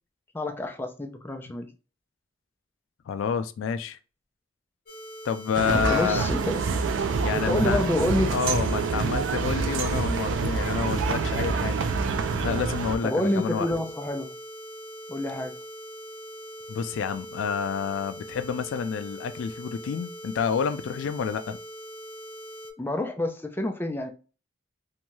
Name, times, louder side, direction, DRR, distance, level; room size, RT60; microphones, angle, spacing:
voice 1, 0.3-1.7 5.7-6.6 7.4-8.4 13.0-14.3 15.1-15.5 22.8-24.1, left 1 dB, 10° left, 0.4 m, -28 dB
voice 2, 3.1-4.0 5.2-6.3 7.2-7.8 8.3-11.9 12.4-13.7 16.7-21.6, left 6 dB, 80° left, 0.3 m, -29 dB
sound 1, 4.9-22.7, equal, 45° left, 0.8 m, -42 dB
sound 2, 5.5-13.0, right 4 dB, 75° right, 0.4 m, -27 dB
2.6 x 2.2 x 3.0 m
head